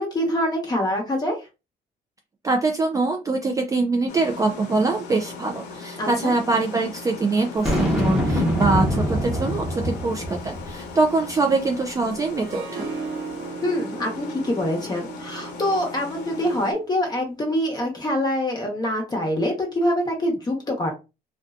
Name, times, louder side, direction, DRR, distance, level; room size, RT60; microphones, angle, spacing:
voice 1, 0.0-1.4 6.0-6.3 13.6-20.9, left 1 dB, 25° left, 1 dB, 1.0 m, -25 dB
voice 2, 2.4-12.9, right 3 dB, 20° right, 2 dB, 0.3 m, -23 dB
sound 1, 4.1-16.7, left 4 dB, 80° left, 0.7 m, -39 dB
Boom, 7.6-11.0, equal, 5° right, 1.1 m, -24 dB
Harp, 12.4-17.5, right 5 dB, 60° right, 0.9 m, -37 dB
2.6 x 2.2 x 2.4 m, 0.27 s
cardioid pair, 110°, 17 cm